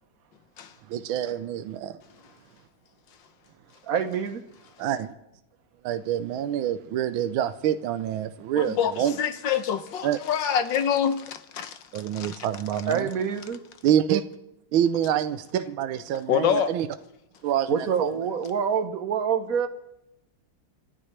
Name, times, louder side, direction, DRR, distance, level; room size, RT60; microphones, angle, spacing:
voice 1, 0.9-2.0 4.8-5.1 5.8-9.2 10.0-10.2 11.9-13.1 13.8-14.3 14.7-16.9 17.4-18.4, right 10 dB, 75° right, 1.5 m, -26 dB
voice 2, 3.9-4.4 12.9-13.6 17.7-19.7, right 7 dB, 50° right, 1.3 m, -26 dB
voice 3, 8.5-11.8 12.1-12.4 16.3-16.7, left 8 dB, 65° left, 1.4 m, -26 dB
28.0 x 12.0 x 3.3 m
omnidirectional pair, 2.3 m